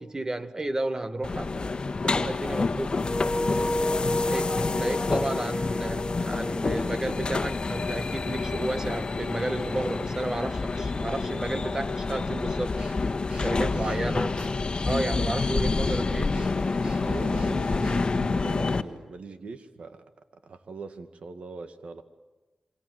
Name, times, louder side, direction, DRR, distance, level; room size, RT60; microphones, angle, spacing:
voice 1, 0.0-2.9 4.3-12.8 13.4-14.4 14.8-16.3, right 2 dB, 30° right, 1.6 m, -32 dB
sound 1, 1.2-18.8, left 3 dB, 45° left, 1.4 m, -28 dB
sound 2, 3.0-7.8, left 1 dB, 15° left, 1.0 m, -31 dB
voice 2, 3.9-4.5 13.5-14.0 17.0-20.0 20.4-22.0, right 4 dB, 70° right, 2.1 m, -41 dB
Breathing, 12.8-18.3, right 1 dB, 50° right, 7.2 m, -46 dB
27.5 x 24.0 x 7.9 m
cardioid pair, 60°, 2 cm